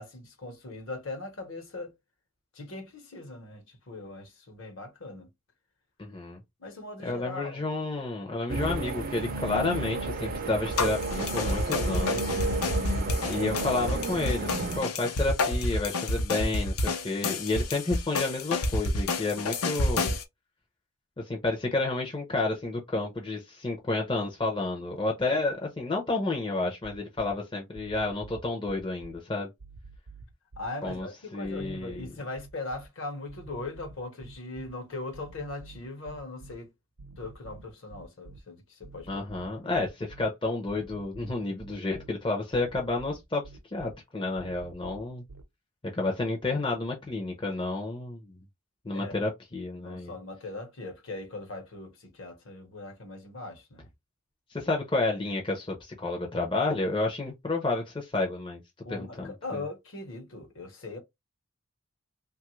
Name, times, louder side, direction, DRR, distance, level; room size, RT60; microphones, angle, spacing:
voice 1, 0.0-1.9 2.5-5.3 6.6-7.7 30.6-36.7 37.2-39.8 48.9-49.3 49.8-53.9 58.8-61.0, left 2 dB, 60° left, 0.9 m, -40 dB
voice 2, 6.0-6.4 7.0-12.4 13.3-20.2 21.2-29.5 30.8-31.1 31.3-32.1 39.1-43.4 43.7-45.2 45.9-48.4 48.8-50.2 54.5-58.6 58.9-59.6, left 2 dB, 20° left, 0.5 m, -30 dB
sound 1, 8.5-14.8, right 3 dB, 40° right, 0.4 m, -32 dB
sound 2, 10.8-20.2, left 2 dB, 80° left, 0.6 m, -29 dB
sound 3, 26.8-27.3 27.7-29.2 29.6-31.0 31.4-32.9 33.3-34.7 35.1-36.6 37.0-38.4 38.8-40.2 40.7-42.1 42.5-43.9 44.4-45.4, right 3 dB, 80° right, 0.6 m, -48 dB
3.0 x 2.3 x 3.0 m
head